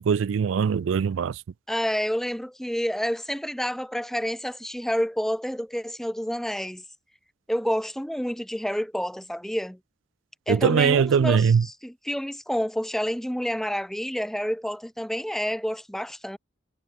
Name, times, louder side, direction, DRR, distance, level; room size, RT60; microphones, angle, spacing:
voice 1, 0.0-1.4 10.5-11.7, right 6 dB, 85° right, 0.4 m, -21 dB
voice 2, 1.7-6.8 7.5-9.8 10.5-16.4, equal, ahead, 0.6 m, -29 dB
head